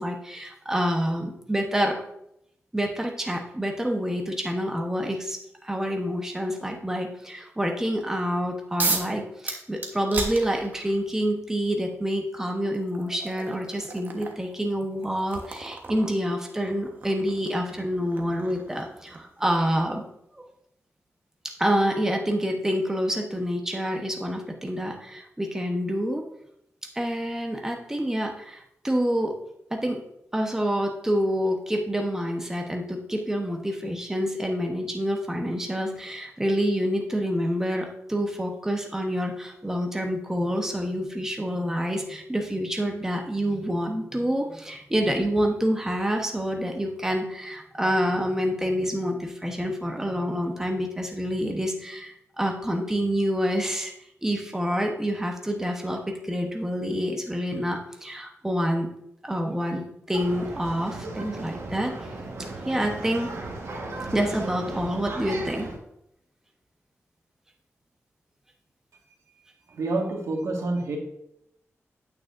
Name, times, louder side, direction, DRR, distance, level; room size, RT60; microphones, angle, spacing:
voice 1, 0.0-2.0 2.7-20.1 20.3-20.4 21.4-26.2 26.9-29.3 29.7-30.0 30.3-53.9 54.2-58.9 59.2-61.9 62.4-63.3 64.1-65.7, equal, 10° right, 2 dB, 1.0 m, -27 dB
sound 1, 8.8-9.1 9.5-11.0 12.1-12.2 12.7-19.4, right 3 dB, 40° right, 1.2 m, -34 dB
sound 2, 60.1-65.8, right 2 dB, 70° right, 1.5 m, -36 dB
voice 2, 69.7-71.0, right 2 dB, 85° right, 1 dB, 1.7 m, -28 dB
8.9 x 8.9 x 2.6 m, 0.78 s
wide cardioid pair, 135°, 5 cm